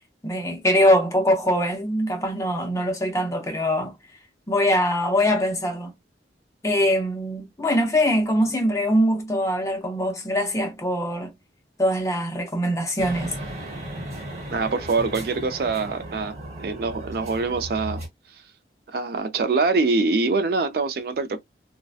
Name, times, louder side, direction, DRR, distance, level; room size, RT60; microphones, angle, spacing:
voice 1, 0.2-3.9 4.5-5.9 6.6-11.3 11.8-13.3, equal, 15° left, 0.5 m, -22 dB
sound 1, 13.0-18.1, right 1 dB, 40° right, 1.0 m, -36 dB
voice 2, 14.5-18.0 18.9-21.4, right 3 dB, 55° right, 0.4 m, -24 dB
2.6 x 2.1 x 2.3 m
head